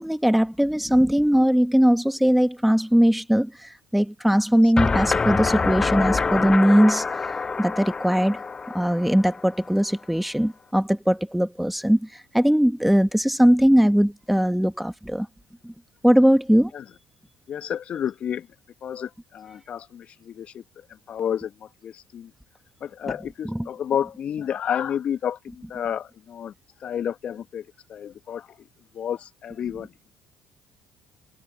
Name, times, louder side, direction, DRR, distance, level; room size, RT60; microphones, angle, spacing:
voice 1, 0.0-7.0 7.6-8.4 8.7-15.3 15.6-15.7 16.0-16.7 23.4-23.7, equal, 5° right, 2.0 m, -20 dB
sound 1, 4.8-9.7, left 4 dB, 25° left, 0.3 m, -26 dB
voice 2, 17.5-18.5 18.8-20.6 21.1-22.3 22.8-26.5 26.8-28.7 28.9-29.9, left 9 dB, 50° left, 2.2 m, -30 dB
hypercardioid pair, 55°, 3 cm